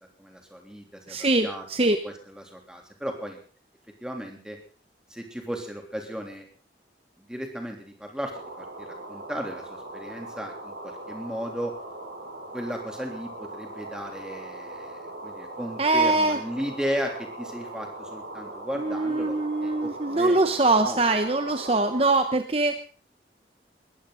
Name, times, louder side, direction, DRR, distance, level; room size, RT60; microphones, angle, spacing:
voice 1, 0.2-3.4 4.0-4.6 5.1-6.4 7.2-11.7 12.5-20.5 20.8-21.0, equal, 5° right, 2 dB, 3.4 m, -35 dB
voice 2, 1.1-2.0 15.8-16.4 18.7-22.8, right 2 dB, 35° right, 7 dB, 1.0 m, -23 dB
sound 1, 8.3-22.1, right 2 dB, 85° right, 6.8 m, -40 dB
21.5 x 15.0 x 4.1 m, 0.40 s
head